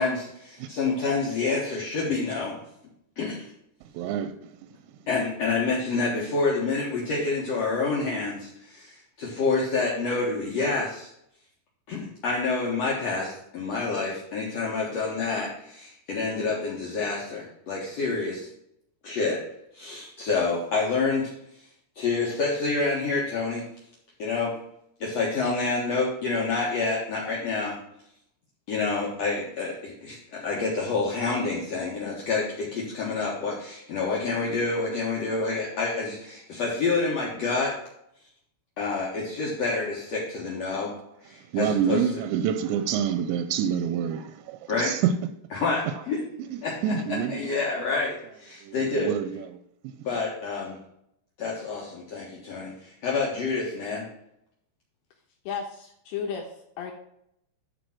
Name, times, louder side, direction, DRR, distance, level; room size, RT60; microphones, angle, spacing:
voice 1, 0.0-2.6 3.2-3.5 5.1-11.1 11.9-18.5 19.0-19.4 19.7-21.3 22.0-23.6 24.2-24.5 25.0-27.8 28.7-37.7 38.8-40.9 41.2-42.1 44.7-44.9 45.5-46.2 46.6-49.1 50.0-50.8 51.4-54.0, left 3 dB, 60° left, 1.7 m, -28 dB
voice 2, 3.9-4.3 41.5-45.1 46.5-47.4 48.6-49.4, right 8 dB, 80° right, 2.7 m, -27 dB
voice 3, 55.5-56.9, left 6 dB, 75° left, 3.1 m, -34 dB
10.5 x 5.1 x 5.9 m
omnidirectional pair, 5.5 m